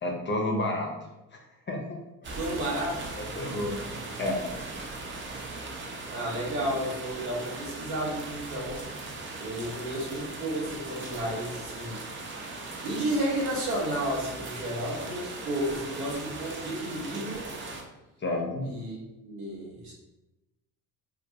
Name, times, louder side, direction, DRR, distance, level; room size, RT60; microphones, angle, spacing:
voice 1, 0.0-0.9 1.7-1.8 3.2-3.8 4.2-4.4 18.2-18.7, left 1 dB, 25° left, 1 dB, 0.6 m, -29 dB
sound 1, 2.2-17.8, right 3 dB, 25° right, 0.5 m, -39 dB
voice 2, 2.3-3.6 6.1-8.8 9.4-12.0 12.8-17.5 18.6-19.9, right 1 dB, 85° right, -3 dB, 0.9 m, -32 dB
2.3 x 2.2 x 2.8 m, 1.0 s
hypercardioid pair, 60°, 45 cm